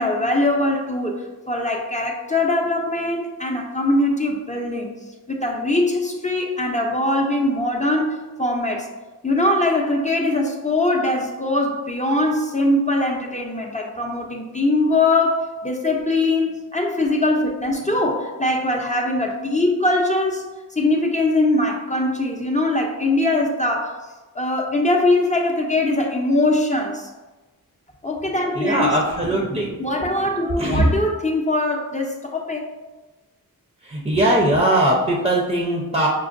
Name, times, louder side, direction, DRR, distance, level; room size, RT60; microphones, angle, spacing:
voice 1, 0.0-4.9 5.3-8.9 9.2-20.4 20.7-24.0 24.3-27.1 28.0-29.0 29.2-29.5 29.8-32.7, left 2 dB, 20° left, 0 dB, 0.5 m, -22 dB
voice 2, 28.6-29.7 30.6-30.9 33.8-36.1, right 1 dB, 20° right, -1 dB, 0.6 m, -20 dB
6.0 x 2.1 x 2.5 m, 1.2 s
wide cardioid pair, 55°, 37 cm